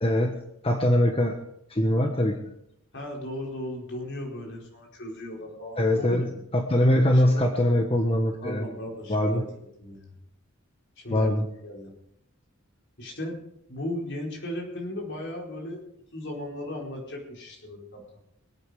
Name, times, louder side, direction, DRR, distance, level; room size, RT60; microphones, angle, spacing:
voice 1, 0.0-0.4 0.6-1.4 1.7-2.4 5.8-6.3 6.5-8.6 9.1-9.4 11.1-11.4, left 1 dB, 25° left, 3 dB, 1.3 m, -22 dB
voice 2, 2.9-6.4 7.1-7.8 8.4-9.4 9.8-10.1 11.0-11.3 11.6-11.9 13.0-13.4 13.7-15.8 16.1-18.2, left 1 dB, 55° left, 0 dB, 4.5 m, -36 dB
24.5 x 9.2 x 4.9 m, 0.77 s
head